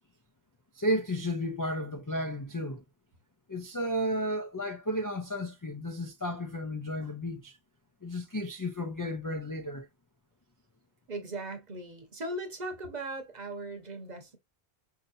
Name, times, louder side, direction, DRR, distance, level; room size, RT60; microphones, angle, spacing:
voice 1, 0.8-2.8 3.5-7.6 8.0-9.9, equal, 30° left, 0.3 m, -33 dB
voice 2, 11.1-14.4, right 2 dB, 45° right, 1.0 m, -38 dB
5.3 x 2.8 x 2.5 m
omnidirectional pair, 1.1 m